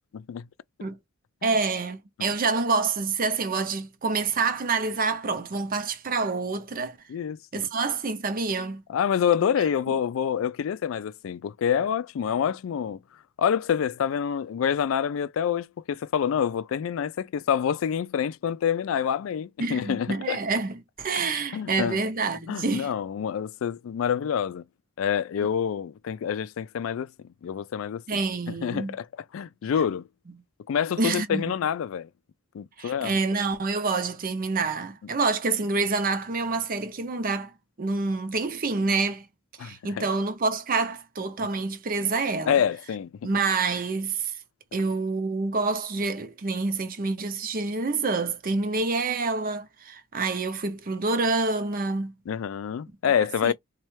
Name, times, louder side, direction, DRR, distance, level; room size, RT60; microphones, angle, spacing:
voice 1, 0.1-0.4 1.4-1.5 2.2-2.3 7.1-7.7 8.9-13.0 13.4-20.4 21.5-22.0 22.5-24.6 25.0-27.1 27.4-28.2 28.5-29.1 29.3-30.1 30.7-32.1 32.5-33.2 39.6-40.1 42.5-43.3 52.3-53.5, left 8 dB, 80° left, 0.3 m, -27 dB
voice 2, 1.4-7.0 7.5-8.8 19.6-22.9 28.1-28.9 31.0-31.5 32.8-39.3 39.6-42.6 43.2-44.3 44.7-52.1 53.4-53.5, right 3 dB, 45° right, 0.6 m, -27 dB
4.1 x 2.3 x 3.2 m
head